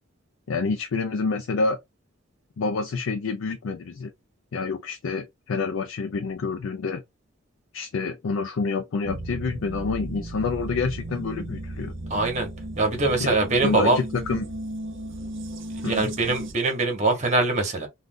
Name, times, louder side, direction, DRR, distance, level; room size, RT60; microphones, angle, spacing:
voice 1, 0.5-1.8 2.6-4.1 4.5-7.0 7.7-11.9 13.6-14.5 15.8-16.1, left 4 dB, 85° left, 0.4 m, -28 dB
sound 1, 9.0-16.5, right 1 dB, 65° right, 0.8 m, -35 dB
voice 2, 12.1-12.5 12.8-14.0 15.8-17.9, right 3 dB, 35° right, 1.1 m, -23 dB
2.5 x 2.4 x 3.5 m
head